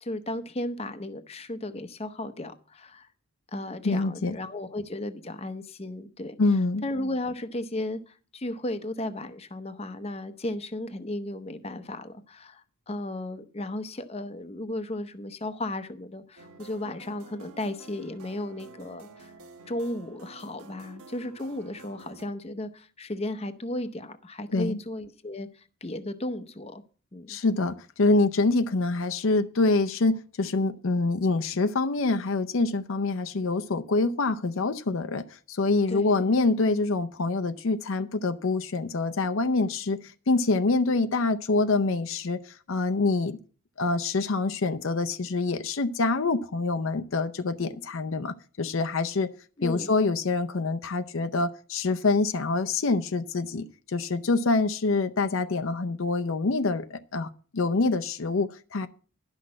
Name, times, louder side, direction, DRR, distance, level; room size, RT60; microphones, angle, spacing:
voice 1, 0.0-3.1 3.5-6.3 6.8-19.3 19.7-26.8 27.1-27.4 35.9-36.3 49.6-49.9, left 1 dB, 30° left, 9 dB, 0.7 m, -35 dB
voice 2, 3.8-4.4 6.4-6.8 24.5-24.8 27.3-43.4 43.8-49.3 49.6-58.9, left 3 dB, 65° left, 8 dB, 0.6 m, -26 dB
sound 1, 16.4-22.2, right 4 dB, 90° right, 1.2 m, -50 dB
11.5 x 6.1 x 7.5 m, 0.40 s
head